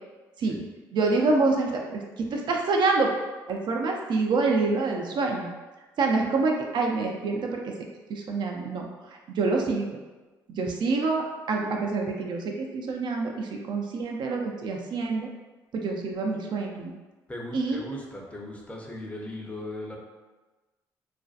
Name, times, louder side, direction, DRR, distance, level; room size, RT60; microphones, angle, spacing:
voice 1, 0.9-3.1 3.5-5.5 6.0-7.7 8.1-8.9 9.3-10.0 10.5-15.3 15.7-16.9 17.5-17.8, right 3 dB, 55° right, 1 dB, 0.4 m, -26 dB
voice 2, 17.3-20.0, left 1 dB, 15° left, -1 dB, 0.6 m, -38 dB
2.5 x 2.2 x 2.4 m, 1.2 s
hypercardioid pair, 55°, 9 cm